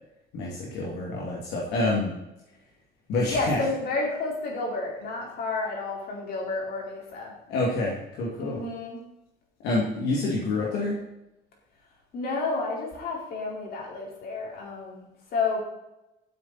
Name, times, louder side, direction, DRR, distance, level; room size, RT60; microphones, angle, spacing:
voice 1, 0.3-2.1 3.1-3.6 7.5-8.6 9.6-11.0, left 2 dB, 85° left, -4 dB, 2.6 m, -27 dB
voice 2, 3.3-7.3 8.4-9.0 12.1-15.6, left 3 dB, 65° left, -2 dB, 4.6 m, -30 dB
12.5 x 8.2 x 4.3 m, 0.92 s
cardioid pair, 110°, 17 cm